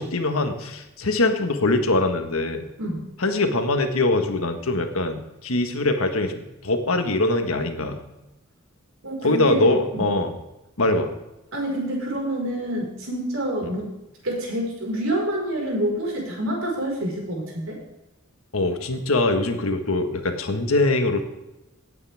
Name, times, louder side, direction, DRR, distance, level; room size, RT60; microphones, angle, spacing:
voice 1, 0.0-2.6 3.2-8.0 9.2-10.4 10.8-11.1 18.5-21.2, left 2 dB, 90° left, 6 dB, 1.5 m, -23 dB
voice 2, 9.0-10.0 11.5-13.9 14.2-17.8, right 1 dB, 80° right, -1 dB, 4.9 m, -27 dB
17.5 x 8.8 x 3.5 m, 0.96 s
head